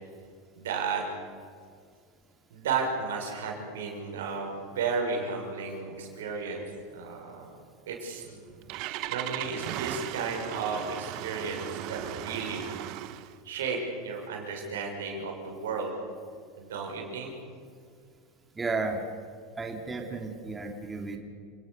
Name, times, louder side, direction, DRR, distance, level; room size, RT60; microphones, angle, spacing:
voice 1, 0.6-1.0 2.5-6.6 6.9-7.6 7.9-8.5 8.8-12.6 13.4-15.9 16.6-17.3, right 5 dB, 80° right, 1 dB, 6.4 m, -33 dB
Engine starting, 8.2-13.4, right 14 dB, 55° right, 1.2 m, -37 dB
voice 2, 18.5-19.0 19.6-21.2, right 3 dB, 15° right, 3 dB, 3.2 m, -33 dB
30.0 x 19.5 x 6.8 m, 2.1 s
hypercardioid pair, 90°, 0 cm